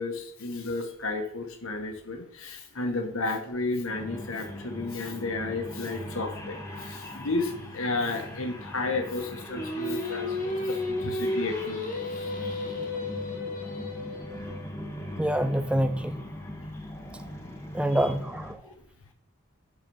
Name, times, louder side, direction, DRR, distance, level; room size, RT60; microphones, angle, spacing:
voice 1, 0.0-12.3 17.8-18.1 18.6-18.7, left 3 dB, 70° left, 1.4 m, -33 dB
sound 1, 3.9-18.5, left 1 dB, 10° left, 1.1 m, -40 dB
Singing, 9.5-14.6, left 2 dB, 40° left, 1.5 m, -33 dB
voice 2, 15.2-16.1 17.7-18.6, right 1 dB, 5° right, 0.3 m, -26 dB
8.5 x 4.2 x 5.5 m
head